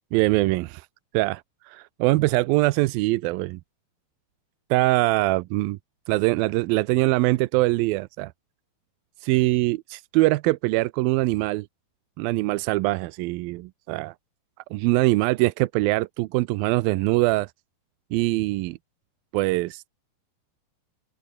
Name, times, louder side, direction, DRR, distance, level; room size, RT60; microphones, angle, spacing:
voice 1, 0.1-0.9 1.1-3.6 4.7-5.8 6.1-8.3 9.2-11.7 12.2-14.1 14.7-17.5 18.1-18.8 19.3-19.9, right 20 dB, 90° right, 2.4 m, -23 dB
omnidirectional pair, 4.2 m